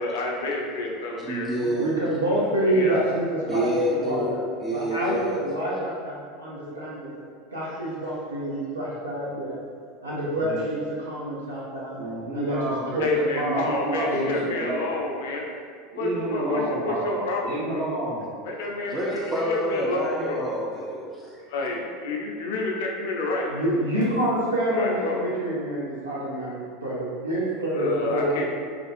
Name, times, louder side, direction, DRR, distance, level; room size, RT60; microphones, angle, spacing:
voice 1, 0.0-1.5 2.7-3.0 13.0-15.4 15.9-17.9 18.4-20.4 21.5-23.5 24.7-25.3 27.6-28.4, left 2 dB, 65° left, 0 dB, 0.4 m, -29 dB
voice 2, 1.2-1.9 3.5-5.4 18.9-21.4, equal, 10° right, -5 dB, 0.3 m, -28 dB
voice 3, 1.8-3.7 4.1-4.4 4.7-7.1 7.5-9.5 10.0-12.0 12.3-12.6 12.9-14.3 23.5-28.4, right 1 dB, 90° right, -7 dB, 0.4 m, -27 dB
voice 4, 11.9-13.1 13.4-14.9 15.9-18.2, right 1 dB, 55° right, -6 dB, 0.8 m, -30 dB
2.4 x 2.3 x 2.5 m, 2.1 s
figure-of-eight pair, 80°, 0 cm